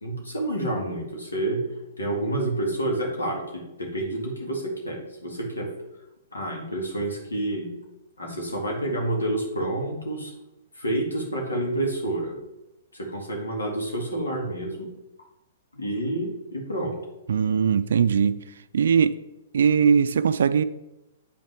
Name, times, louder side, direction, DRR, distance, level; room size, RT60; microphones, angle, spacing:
voice 1, 0.0-1.7 2.0-5.7 6.3-7.7 8.2-10.3 10.7-12.4 12.9-14.9 15.7-17.0, right 1 dB, 80° left, 0 dB, 2.0 m, -29 dB
voice 2, 17.3-18.4 18.7-19.2 19.5-20.6, right 7 dB, 65° right, 14 dB, 0.4 m, -20 dB
8.3 x 5.4 x 3.4 m, 0.93 s
figure-of-eight pair, 115°, 0 cm